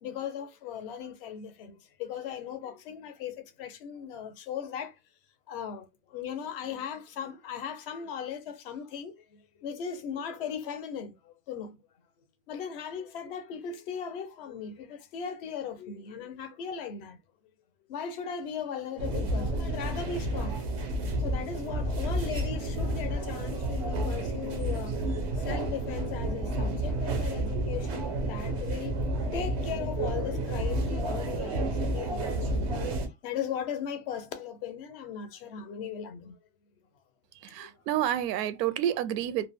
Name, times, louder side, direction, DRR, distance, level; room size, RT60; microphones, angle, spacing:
voice 1, 0.0-4.9 5.5-11.8 12.5-17.2 17.9-20.6 21.2-29.0 29.3-32.8 33.2-36.4 37.6-37.7, left 7 dB, 40° left, 0.4 m, -38 dB
sound 1, 19.0-33.1, right 1 dB, 30° right, 0.3 m, -30 dB
voice 2, 37.4-39.5, right 11 dB, 90° right, 0.5 m, -29 dB
2.2 x 2.0 x 3.2 m
supercardioid pair, 170°, 47 cm